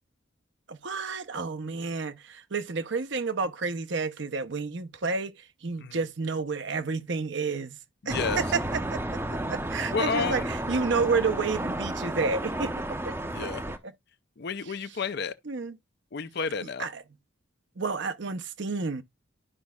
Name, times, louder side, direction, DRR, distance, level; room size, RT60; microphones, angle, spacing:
voice 1, 0.7-7.8 8.1-9.0 9.3-12.7 13.0-13.9 15.4-15.8 16.6-17.0 17.8-19.0, right 4 dB, 55° right, 0.7 m, -30 dB
sound 1, 8.1-13.8, right 1 dB, 10° right, 0.7 m, -32 dB
voice 2, 9.9-10.5 13.3-13.6 14.4-15.3 16.1-16.9, left 5 dB, 50° left, 0.5 m, -31 dB
12.0 x 5.3 x 2.3 m
head